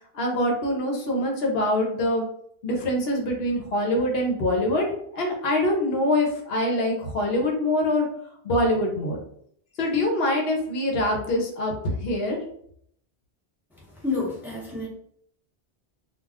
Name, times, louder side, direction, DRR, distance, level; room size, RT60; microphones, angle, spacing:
voice 1, 0.1-2.2 2.6-4.9 5.1-8.1 8.4-9.2 9.8-12.4, left 1 dB, 70° left, 0 dB, 0.9 m, -24 dB
voice 2, 13.7-14.9, left 3 dB, ahead, -6 dB, 0.7 m, -30 dB
2.3 x 2.3 x 3.4 m, 0.68 s
omnidirectional pair, 1.1 m